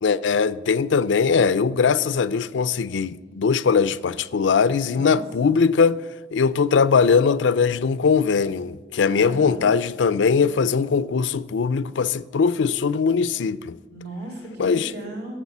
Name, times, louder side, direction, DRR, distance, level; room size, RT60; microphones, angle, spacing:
voice 1, 0.0-6.0 6.3-13.7 14.6-14.9, left 5 dB, 85° left, 0.4 m, -20 dB
voice 2, 4.8-5.6 9.1-9.8 13.9-15.4, right 1 dB, 60° right, 3.3 m, -36 dB
13.5 x 7.2 x 7.2 m
head